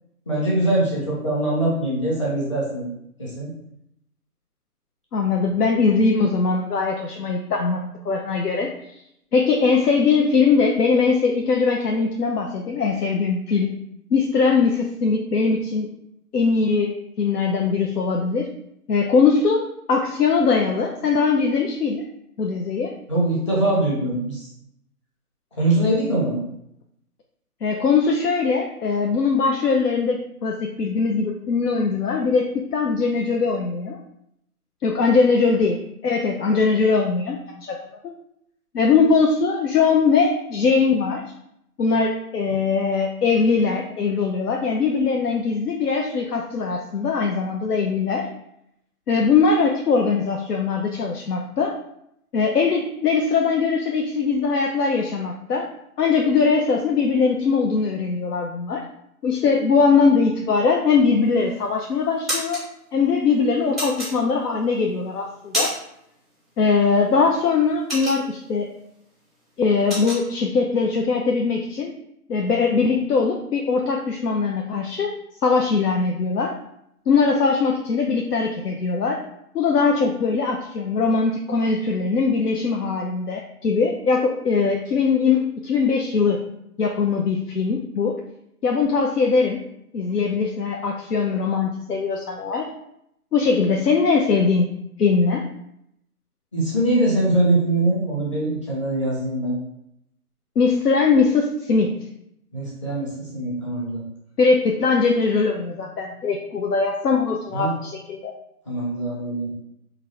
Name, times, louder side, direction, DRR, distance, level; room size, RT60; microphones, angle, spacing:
voice 1, 0.3-2.9 3.2-3.5 23.1-24.5 25.5-26.4 96.5-99.6 102.5-104.0 107.5-107.7 108.7-109.5, right 1 dB, 20° left, -6 dB, 0.8 m, -22 dB
voice 2, 5.1-8.7 9.3-13.7 14.1-15.9 16.3-18.5 18.9-22.0 22.4-23.0 27.6-34.0 34.8-37.8 38.0-38.1 38.7-41.2 41.8-48.3 49.1-51.7 52.3-55.7 56.0-58.8 59.2-62.6 62.9-65.7 66.6-68.7 69.6-71.9 72.3-75.2 75.4-76.6 77.1-79.2 79.5-86.4 86.8-88.2 88.6-89.6 89.9-92.7 93.3-94.7 95.0-95.5 100.6-102.0 104.4-108.3, left 4 dB, 85° left, 1 dB, 0.6 m, -21 dB
sound 1, 61.2-61.7 62.0-62.6 63.8-64.6 65.1-66.0 66.3-66.6 66.9-68.6 69.0-69.2 69.4-70.2, equal, ahead, 0.4 m, -28 dB
4.4 x 2.5 x 3.2 m, 0.77 s
figure-of-eight pair, 155°, 46 cm